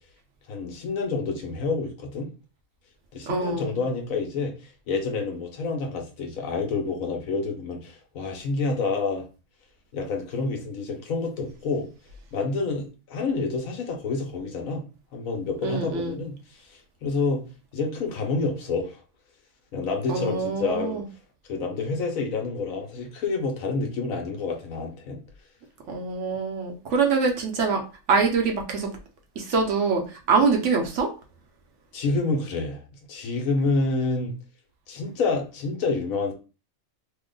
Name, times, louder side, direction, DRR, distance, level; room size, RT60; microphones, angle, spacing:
voice 1, 0.5-2.3 3.1-9.3 9.9-11.9 12.3-14.9 15.1-17.5 17.7-19.0 19.7-21.0 21.5-25.2 31.9-32.8 33.1-34.3 34.9-36.3, left 3 dB, 70° left, 2 dB, 1.2 m, -28 dB
voice 2, 3.3-3.8 15.6-16.2 20.1-21.0 25.9-27.8 28.1-28.9 29.4-31.1, right 4 dB, 65° right, 2 dB, 0.9 m, -24 dB
2.9 x 2.1 x 3.7 m, 0.33 s
omnidirectional pair, 1.5 m